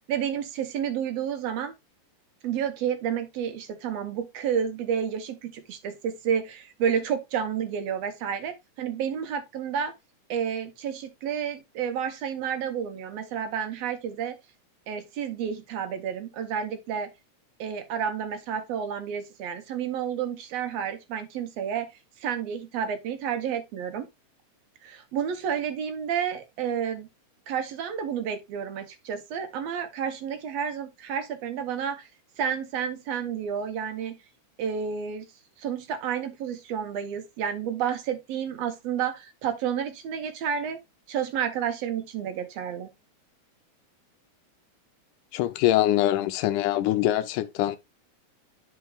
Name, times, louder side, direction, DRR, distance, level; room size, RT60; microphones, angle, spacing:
voice 1, 0.1-1.7 2.4-9.9 10.3-14.4 14.9-17.1 17.6-21.9 22.2-24.1 24.8-27.1 27.5-32.1 32.4-34.1 34.6-35.3 35.6-40.8 41.1-42.9, right 8 dB, 70° right, 1.7 m, -30 dB
voice 2, 45.3-47.8, left 13 dB, 90° left, 2.1 m, -23 dB
10.0 x 4.6 x 2.3 m
omnidirectional pair, 3.6 m